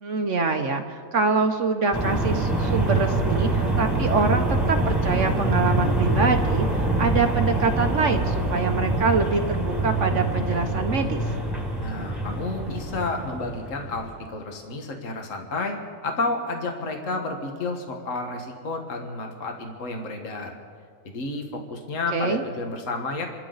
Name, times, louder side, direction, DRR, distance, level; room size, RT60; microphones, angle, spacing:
voice 1, 0.0-11.2 22.1-22.4, right 4 dB, 55° right, 5 dB, 1.1 m, -25 dB
sound 1, 1.9-14.2, right 2 dB, ahead, 1.8 m, -25 dB
voice 2, 11.8-20.6 21.0-23.3, left 3 dB, 50° left, 3 dB, 1.8 m, -31 dB
28.0 x 13.0 x 4.0 m, 2.1 s
omnidirectional pair, 1.7 m